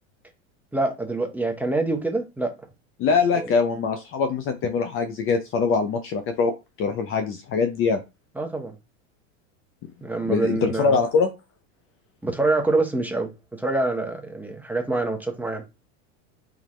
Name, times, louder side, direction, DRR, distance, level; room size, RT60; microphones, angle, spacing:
voice 1, 0.7-2.5 3.3-3.5 8.4-8.7 10.0-11.0 12.2-15.6, right 2 dB, 5° right, 0.8 m, -26 dB
voice 2, 3.0-6.5 6.8-8.0 10.2-11.3, left 5 dB, 30° left, 0.6 m, -23 dB
3.5 x 3.5 x 3.2 m
supercardioid pair, 125°, 41 cm